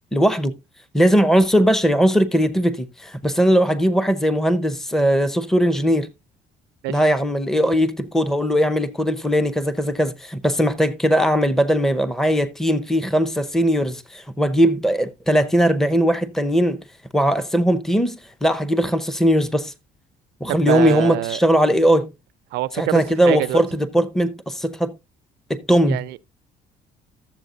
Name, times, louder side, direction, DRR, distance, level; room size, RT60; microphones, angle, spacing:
voice 1, 0.1-0.5 0.9-6.1 6.9-16.8 17.1-19.7 20.4-22.1 22.7-25.0 25.5-26.0, equal, 5° left, 0.7 m, -19 dB
voice 2, 20.5-21.4 22.5-23.6 25.9-26.2, right 17 dB, 80° right, 0.5 m, -25 dB
13.5 x 7.3 x 2.5 m
cardioid pair, 110°, 17 cm